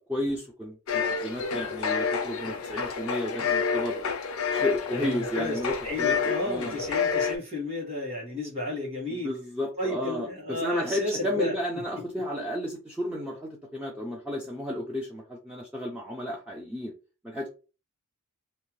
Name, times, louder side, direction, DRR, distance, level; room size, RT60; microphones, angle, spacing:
voice 1, 0.0-4.1 4.5-6.8 9.1-16.9 17.2-17.5, left 1 dB, 5° right, 0.4 m, -32 dB
sound 1, 0.9-7.4, left 6 dB, 75° left, 0.5 m, -29 dB
voice 2, 4.9-5.5 5.8-9.3 9.8-11.5, left 2 dB, 30° right, 1.4 m, -32 dB
2.7 x 2.1 x 3.0 m
head